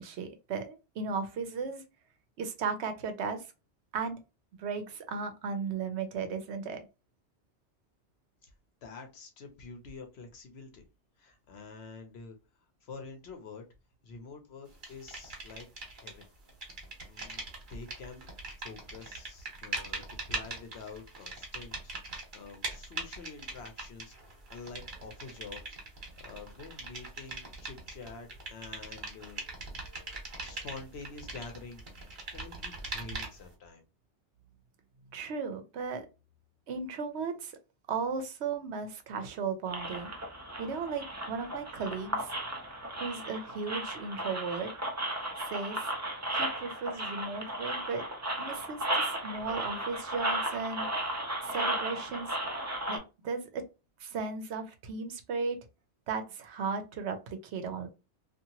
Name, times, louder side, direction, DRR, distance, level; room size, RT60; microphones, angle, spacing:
voice 1, 0.0-1.8 2.4-3.5 3.9-4.2 4.6-6.9 35.1-36.1 36.7-37.6 37.9-40.1 40.6-42.3 43.0-44.7 45.4-45.9 46.3-48.0 48.4-50.9 51.4-52.4 52.9-53.6 54.0-55.6 56.1-57.9, right 5 dB, 75° right, 8 dB, 0.9 m, -36 dB
voice 2, 8.8-10.8 11.2-12.4 12.8-13.7 14.0-15.7 16.0-16.3 16.8-17.4 17.7-18.2 18.6-29.4 29.8-30.0 30.4-31.8 32.3-33.8, left 4 dB, 70° left, 5 dB, 0.9 m, -47 dB
sound 1, 14.8-16.2 16.5-33.5, right 3 dB, 45° right, 1.2 m, -41 dB
sound 2, 39.7-53.0, right 1 dB, 20° right, 0.4 m, -35 dB
2.8 x 2.5 x 2.7 m, 0.28 s
omnidirectional pair, 1.2 m